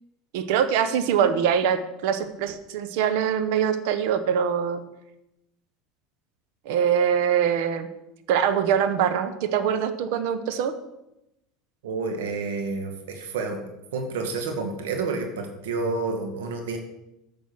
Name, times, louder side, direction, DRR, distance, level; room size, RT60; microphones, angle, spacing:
voice 1, 0.3-4.8 6.6-7.9 8.3-10.7, right 8 dB, 70° right, 10 dB, 1.0 m, -23 dB
voice 2, 11.8-13.6 13.9-16.8, right 4 dB, 85° right, 3 dB, 1.6 m, -29 dB
8.6 x 6.1 x 6.1 m, 0.89 s
supercardioid pair, 105°, 0 cm